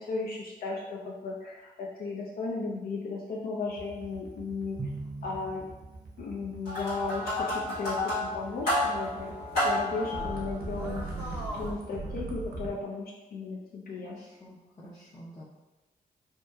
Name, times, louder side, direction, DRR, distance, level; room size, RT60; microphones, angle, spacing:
voice 1, 0.0-4.8 5.2-5.6 6.2-9.3 9.6-11.0 11.5-14.2, left 3 dB, 70° left, -3 dB, 0.4 m, -35 dB
sound 1, 3.7-12.7, right 3 dB, 75° right, 0.6 m, -40 dB
Drum, 4.8-6.5, right 3 dB, 25° right, 0.6 m, -41 dB
sound 2, 6.7-11.7, left 1 dB, 85° left, 1.3 m, -31 dB
voice 2, 14.0-15.4, equal, 20° left, -6 dB, 0.6 m, -49 dB
2.8 x 2.2 x 2.2 m, 1.1 s
supercardioid pair, 45°, 16 cm